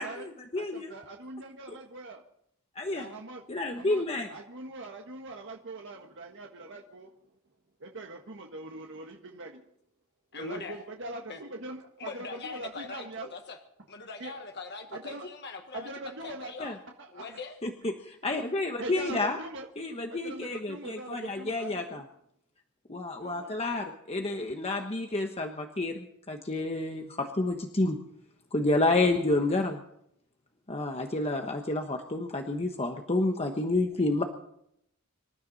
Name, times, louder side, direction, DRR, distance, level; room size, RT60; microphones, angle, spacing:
voice 1, 0.0-0.9 1.7-1.8 2.7-3.1 3.5-4.3 16.6-16.8 17.6-19.4 19.8-22.0 22.9-28.0 28.5-29.8 30.7-34.2, left 2 dB, 30° left, 4 dB, 1.2 m, -30 dB
voice 2, 0.6-2.2 2.9-3.4 3.7-4.0 4.3-7.1 7.8-9.6 10.3-13.3 14.2-14.4 14.9-15.3 15.7-16.5 17.0-17.2 18.8-19.7 20.1-22.0 23.2-23.5, right 2 dB, 55° right, 2 dB, 1.6 m, -42 dB
voice 3, 10.3-10.8 11.3-11.4 12.0-13.6 13.9-16.8 17.1-17.6 19.1-19.2 23.8-23.9, left 4 dB, 50° left, 4 dB, 1.6 m, -41 dB
26.0 x 13.0 x 4.1 m, 0.73 s
head